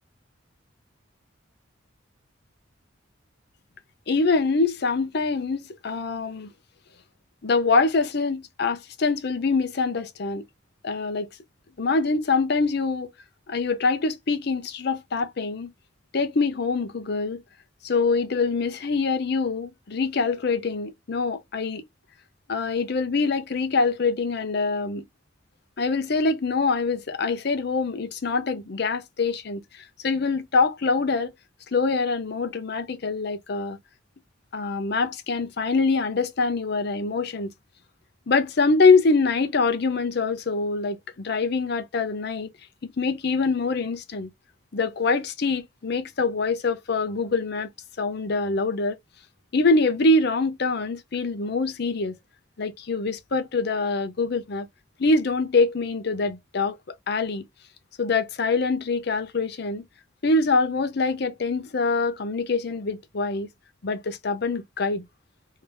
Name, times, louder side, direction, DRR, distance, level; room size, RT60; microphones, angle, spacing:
voice 1, 4.1-6.5 7.4-10.4 10.8-11.3 11.8-13.1 13.5-15.7 16.1-17.4 17.8-21.8 22.5-25.0 25.8-31.3 31.7-33.8 34.5-37.5 38.3-42.5 42.8-44.3 44.7-47.7 48.0-49.0 49.5-52.1 52.6-54.7 55.0-57.4 58.0-59.8 60.2-63.5 63.8-65.0, left 3 dB, 55° left, 0.6 m, -24 dB
3.3 x 2.7 x 3.3 m
head